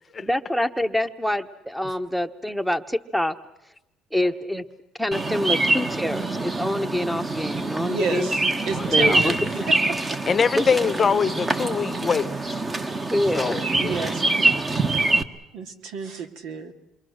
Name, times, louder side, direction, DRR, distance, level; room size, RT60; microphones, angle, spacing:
voice 1, 0.2-3.3 4.1-4.6 5.0-8.3 8.9-9.3 10.6-10.7 13.1-13.7, left 1 dB, ahead, 1.1 m, -26 dB
Bird vocalization bird call bird song, 5.1-15.2, right 2 dB, 25° right, 1.4 m, -25 dB
voice 2, 7.9-9.4 13.8-14.5 15.5-16.7, right 4 dB, 75° right, 2.2 m, -31 dB
voice 3, 8.7-9.2 9.6-9.7 10.3-12.3 13.3-14.1, left 6 dB, 35° left, 0.9 m, -24 dB
27.5 x 23.5 x 6.5 m
supercardioid pair, 95°, 0 cm